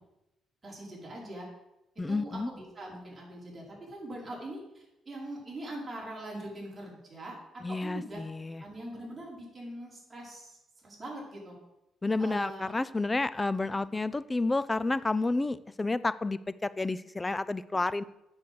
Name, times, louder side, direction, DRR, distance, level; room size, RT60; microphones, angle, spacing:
voice 1, 0.6-1.5 2.1-7.4 7.7-8.2 8.6-11.6 12.2-12.7 13.7-13.9, right 1 dB, 25° right, -4 dB, 5.3 m, -42 dB
voice 2, 2.0-2.5 7.6-8.6 12.0-18.0, left 2 dB, 20° left, 17 dB, 0.5 m, -30 dB
9.3 x 7.0 x 8.0 m, 0.91 s
cardioid pair, 90°, 0 cm